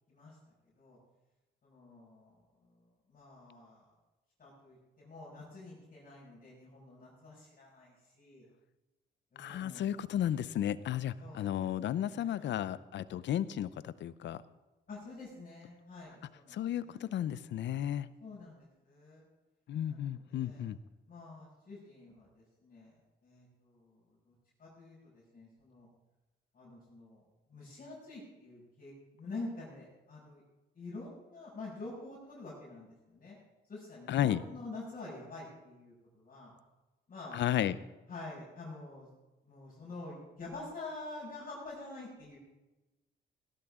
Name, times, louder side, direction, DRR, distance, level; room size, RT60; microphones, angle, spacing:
voice 1, 1.6-3.9 4.4-8.4 9.3-9.9 11.2-12.5 14.9-17.0 18.2-19.2 19.8-20.6 21.1-25.9 26.5-27.2 27.5-30.4 30.7-33.4 33.7-36.5 37.1-37.4 38.1-39.1 39.4-42.4, left 2 dB, 45° left, -8 dB, 5.8 m, -48 dB
voice 2, 9.4-14.4 16.5-18.1 19.7-20.8 34.1-34.4 37.3-37.8, left 11 dB, 65° left, 16 dB, 0.6 m, -33 dB
17.5 x 12.0 x 3.7 m, 1.1 s
cardioid pair, 90°, 20 cm